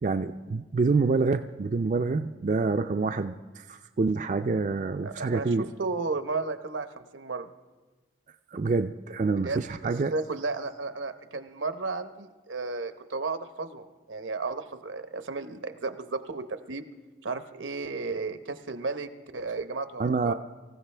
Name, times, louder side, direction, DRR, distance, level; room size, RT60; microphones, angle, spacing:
voice 1, 0.0-5.7 8.5-10.1 20.0-20.3, right 4 dB, 40° right, 7 dB, 0.4 m, -27 dB
voice 2, 5.0-7.5 9.3-16.9 17.2-20.3, right 3 dB, 90° right, 9 dB, 0.9 m, -34 dB
24.5 x 15.0 x 3.3 m, 1.2 s
head